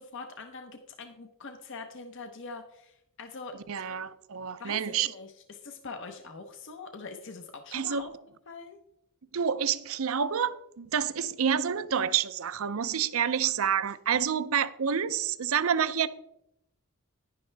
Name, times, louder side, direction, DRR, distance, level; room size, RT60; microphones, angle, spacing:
voice 1, 0.0-3.6 4.6-8.1 8.5-8.8, left 4 dB, 55° left, 0.8 m, -43 dB
voice 2, 3.7-5.1 7.7-8.0 9.3-16.1, right 7 dB, 70° right, 0.5 m, -28 dB
10.5 x 10.5 x 3.3 m
head